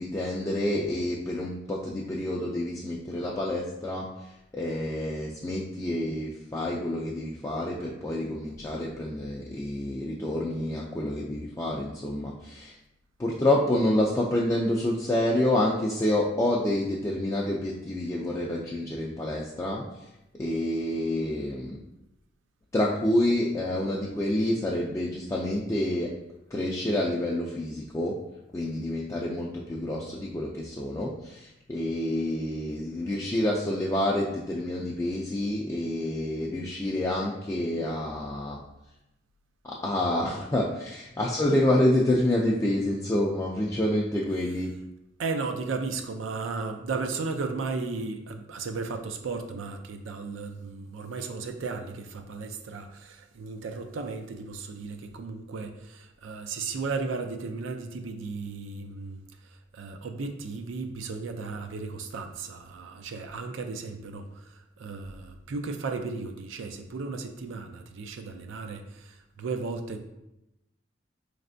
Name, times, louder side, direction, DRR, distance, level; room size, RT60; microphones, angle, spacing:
voice 1, 0.0-4.1 4.5-12.7 13.2-19.8 20.4-21.8 22.7-26.1 26.5-28.1 28.5-38.6 39.6-44.7, left 1 dB, 15° left, -4 dB, 0.3 m, -28 dB
voice 2, 45.2-70.0, right 4 dB, 85° right, 5 dB, 0.4 m, -35 dB
4.1 x 3.3 x 2.5 m, 0.91 s
head